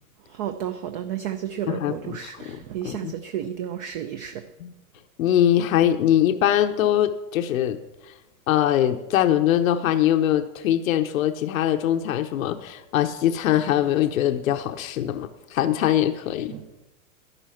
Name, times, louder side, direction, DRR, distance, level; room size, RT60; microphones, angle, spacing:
voice 1, 0.3-4.4 16.5-16.6, right 10 dB, 35° right, 9 dB, 0.5 m, -32 dB
voice 2, 1.7-2.6 2.8-3.1 4.6-4.7 5.2-7.8 8.5-16.5, left 11 dB, 75° left, 9 dB, 0.9 m, -22 dB
11.5 x 11.0 x 5.8 m, 0.99 s
supercardioid pair, 155°, 41 cm